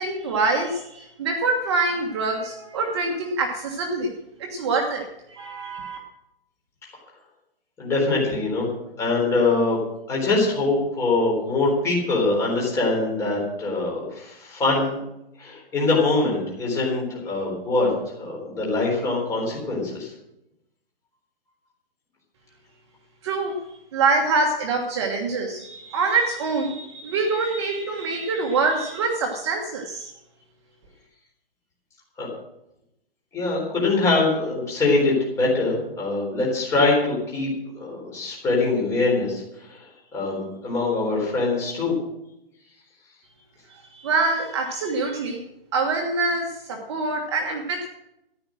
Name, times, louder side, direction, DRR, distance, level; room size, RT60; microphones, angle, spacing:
voice 1, 0.0-4.1 4.4-6.0 23.2-23.6 23.9-30.1 43.9-45.4 45.7-47.9, right 3 dB, 30° right, 2 dB, 1.4 m, -25 dB
voice 2, 7.8-8.7 9.0-9.8 10.1-15.0 15.4-17.9 18.2-20.1 32.2-32.3 33.3-37.5 37.8-39.4 39.7-39.8 40.1-41.9, left 3 dB, 10° left, -2 dB, 3.9 m, -23 dB
14.5 x 10.5 x 6.3 m, 0.85 s
hypercardioid pair, 170°, 29 cm